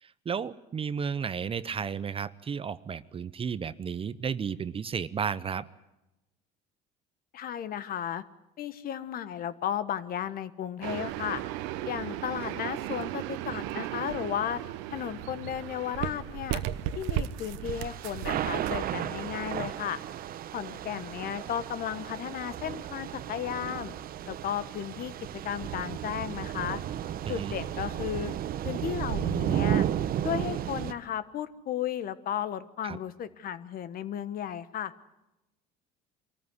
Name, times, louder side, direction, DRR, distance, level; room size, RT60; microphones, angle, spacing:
voice 1, 0.0-5.7 27.2-27.5 32.8-33.0, right 6 dB, 30° right, 16 dB, 0.8 m, -33 dB
voice 2, 7.3-8.2 8.6-11.4 11.8-14.6 14.9-16.6 17.0-20.0 20.5-23.9 24.2-25.1 25.4-26.8 27.3-28.3 28.6-29.9 30.2-34.9, left 10 dB, 55° left, 14 dB, 1.3 m, -34 dB
sound 1, 10.8-18.8, right 12 dB, 85° right, 1.0 m, -35 dB
Thunder / Rain, 17.6-30.9, right 11 dB, 55° right, 0.9 m, -33 dB
24.0 x 14.0 x 9.8 m, 0.96 s
supercardioid pair, 100°, 18 cm